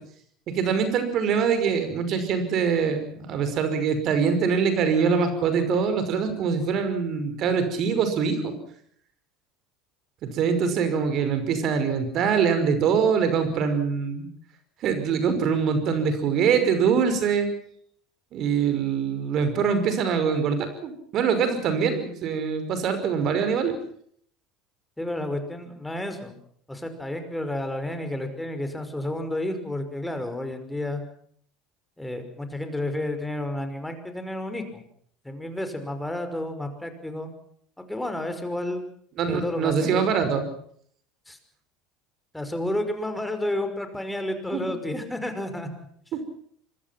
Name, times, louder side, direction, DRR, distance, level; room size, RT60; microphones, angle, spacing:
voice 1, 0.5-8.6 10.2-14.3 14.8-17.5 18.3-23.8 39.2-40.4 44.5-44.6 46.1-46.3, right 6 dB, 50° right, 9 dB, 5.5 m, -24 dB
voice 2, 25.0-26.4 26.7-31.0 32.0-34.8 35.2-37.3 37.8-38.8 39.3-40.1 41.3-41.4 42.3-45.7, left 1 dB, 5° left, 7 dB, 5.6 m, -31 dB
25.5 x 22.0 x 6.0 m, 0.62 s
hypercardioid pair, 70°, 0 cm